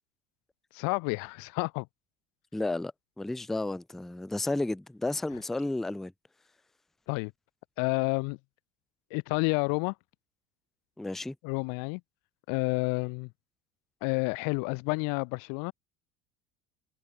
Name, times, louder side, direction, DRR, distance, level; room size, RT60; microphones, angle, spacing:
voice 1, 0.7-1.9 7.1-7.3 7.8-8.4 9.1-9.9 11.4-12.0 12.5-13.3 14.0-15.7, left 34 dB, 60° left, 0.6 m, -29 dB
voice 2, 2.5-6.1 11.0-11.4, left 2 dB, ahead, 0.4 m, -32 dB
hypercardioid pair, 75°, 39 cm